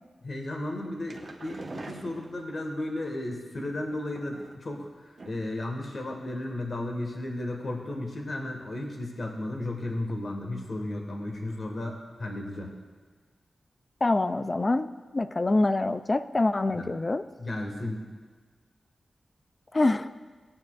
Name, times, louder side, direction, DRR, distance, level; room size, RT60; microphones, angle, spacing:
voice 1, 0.2-12.7 16.7-17.0 17.4-18.1, left 1 dB, 55° left, 1 dB, 1.5 m, -34 dB
sound 1, 0.7-2.8 3.8-4.8 5.2-5.6 5.9-6.0 6.3-6.4, right 2 dB, 50° right, 1.1 m, -44 dB
voice 2, 14.0-17.2 19.7-20.1, left 2 dB, 30° left, 12 dB, 0.3 m, -25 dB
17.0 x 9.5 x 2.4 m, 1.5 s
wide cardioid pair, 85°, 0 cm